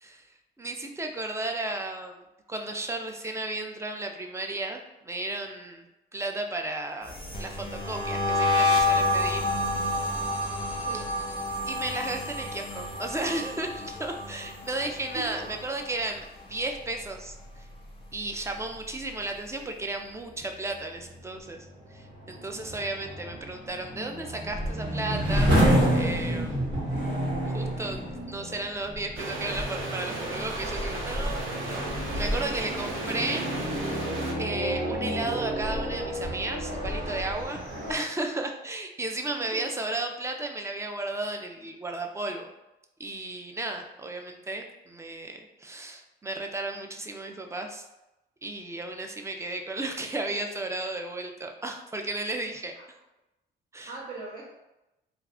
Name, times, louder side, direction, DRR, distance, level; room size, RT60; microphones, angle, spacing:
voice 1, 0.6-2.2 2.5-5.9 6.1-7.1 7.4-9.5 10.9-11.0 11.7-17.4 18.1-21.6 21.9-25.5 25.9-26.7 27.5-31.9 32.1-34.0 34.4-42.5 43.0-47.8 48.4-52.7 53.7-53.9, right 2 dB, 15° right, 4 dB, 0.3 m, -34 dB
sound 1, 7.0-16.2 16.5-16.9 17.3-18.8, left 2 dB, 25° left, 0.7 m, -29 dB
voice 2, 15.1-15.5 32.5-32.6 39.4-39.6 52.7-52.9 53.8-54.5, right 3 dB, 45° right, -7 dB, 0.8 m, -40 dB
sound 2, 20.9-38.0, equal, 65° right, 1.4 m, -30 dB
sound 3, 29.2-34.3, right 2 dB, 80° right, 0.7 m, -34 dB
2.4 x 2.2 x 3.5 m, 0.95 s
cardioid pair, 90°, 20 cm